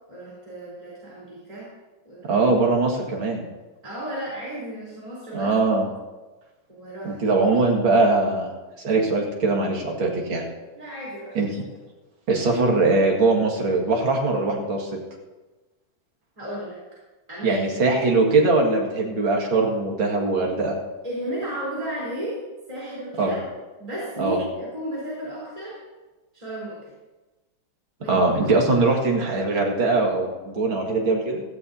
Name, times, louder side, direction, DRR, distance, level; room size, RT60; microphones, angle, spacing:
voice 1, 0.1-1.7 2.0-2.3 3.8-5.5 6.7-7.4 10.8-11.4 16.4-16.8 17.3-17.6 21.0-22.4 22.7-23.4 23.8-25.8 26.3-26.8 28.0-28.2, right 1 dB, 15° right, -8 dB, 3.9 m, -33 dB
voice 2, 2.3-3.5 5.3-5.9 7.0-8.5 8.8-10.5 11.4-11.5 12.3-14.9 17.4-20.8 23.2-23.3 24.2-24.4 28.1-31.4, right 3 dB, 75° right, 0 dB, 2.7 m, -21 dB
16.5 x 14.5 x 2.8 m, 1.2 s
omnidirectional pair, 2.2 m